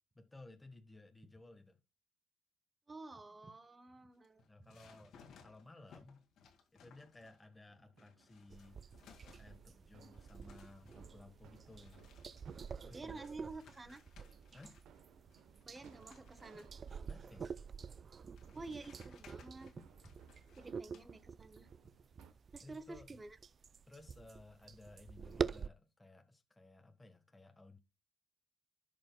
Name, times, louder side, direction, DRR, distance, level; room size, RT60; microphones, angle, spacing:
voice 1, 0.1-1.8 4.4-5.2 5.4-6.2 6.7-8.8 9.4-12.1 12.8-13.3 14.5-14.8 17.0-17.6 22.6-23.1 23.9-27.8, left 2 dB, 15° left, 1.3 m, -58 dB
voice 2, 2.9-4.4 12.9-14.0 15.6-16.7 18.5-20.1 20.5-21.7 22.5-23.4, right 3 dB, 25° right, 1.1 m, -50 dB
sound 1, 4.2-7.6 8.0-9.8 10.0-15.0 15.3-16.9 17.8-17.9 18.4-21.1, left 6 dB, 75° left, 2.0 m, -64 dB
sound 2, 7.7-22.3, right 7 dB, 80° right, 0.9 m, -64 dB
sound 3, 8.5-25.7, right 6 dB, 45° right, 0.4 m, -47 dB
13.0 x 5.2 x 2.2 m
cardioid pair, 90°, 0 cm